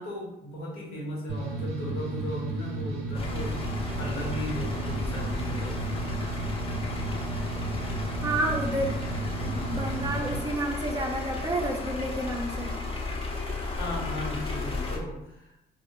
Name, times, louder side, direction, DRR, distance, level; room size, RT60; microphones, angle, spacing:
voice 1, 0.0-3.5 4.0-6.5 13.7-15.5, left 1 dB, 80° left, -5 dB, 1.3 m, -37 dB
sound 1, 1.3-10.4, right 2 dB, 90° right, 0.5 m, -33 dB
sound 2, 3.1-15.0, left 3 dB, 30° left, 0.6 m, -34 dB
voice 2, 8.2-8.9 9.4-12.7, right 1 dB, 20° right, 1 dB, 0.4 m, -30 dB
2.5 x 2.0 x 2.9 m, 0.85 s
cardioid pair, 90°, 20 cm